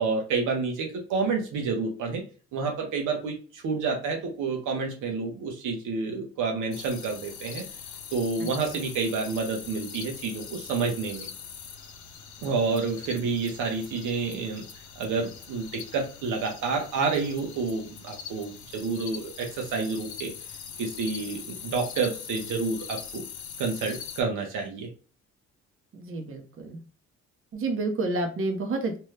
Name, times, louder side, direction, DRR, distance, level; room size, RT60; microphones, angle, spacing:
voice 1, 0.0-2.2 2.5-7.6 8.1-11.3 12.4-14.6 15.0-20.3 20.8-23.2 23.6-24.9, right 4 dB, 85° right, 2 dB, 0.9 m, -29 dB
sound 1, 6.7-24.2, left 7 dB, 70° left, 0.6 m, -42 dB
voice 2, 25.9-26.8 27.5-29.0, right 3 dB, 45° right, 4 dB, 0.8 m, -29 dB
2.8 x 2.2 x 3.2 m, 0.37 s
cardioid pair, 90°, 30 cm